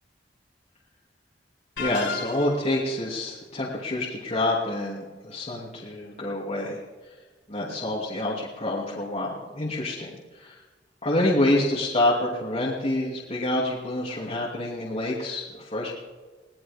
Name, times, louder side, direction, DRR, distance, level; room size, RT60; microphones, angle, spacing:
sound 1, 1.8-2.8, left 4 dB, 90° left, 4.3 m, -33 dB
voice 1, 1.8-6.8 7.5-10.6 11.0-15.9, left 1 dB, 35° left, -6 dB, 2.7 m, -27 dB
21.5 x 18.0 x 3.6 m, 1.4 s
head